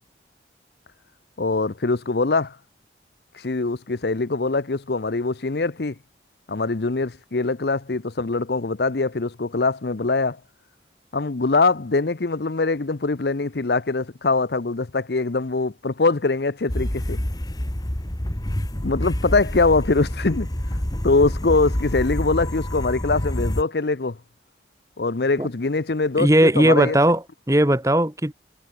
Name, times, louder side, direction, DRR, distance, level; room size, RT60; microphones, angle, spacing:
voice 1, 1.4-2.6 3.3-6.0 6.5-10.4 11.1-17.2 18.8-20.5 21.0-24.2 25.0-27.0, left 3 dB, 65° left, 0.8 m, -23 dB
sound 1, 16.7-23.6, left 1 dB, 20° left, 1.4 m, -27 dB
voice 2, 26.2-28.3, right 1 dB, 15° right, 1.6 m, -18 dB
head